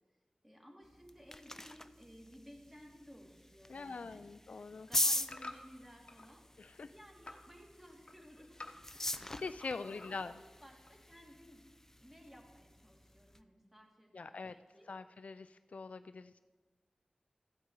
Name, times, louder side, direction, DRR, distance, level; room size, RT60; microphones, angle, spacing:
voice 1, 0.4-6.5 6.8-8.6 8.9-9.3 9.6-11.6 12.0-14.9, equal, 10° right, 0 dB, 2.3 m, -58 dB
sound 1, 0.8-13.4, left 1 dB, 20° left, 0.5 m, -42 dB
voice 2, 3.7-4.9 6.6-6.9 9.0-10.4 14.1-14.6 14.9-16.4, left 4 dB, 90° left, 11 dB, 0.3 m, -44 dB
sound 2, 4.6-6.3 6.7-7.5 7.8-9.6 9.8-10.4 10.9-11.0, left 2 dB, 50° left, 0.9 m, -51 dB
14.5 x 8.3 x 4.6 m, 1.3 s
wide cardioid pair, 65°, 2 cm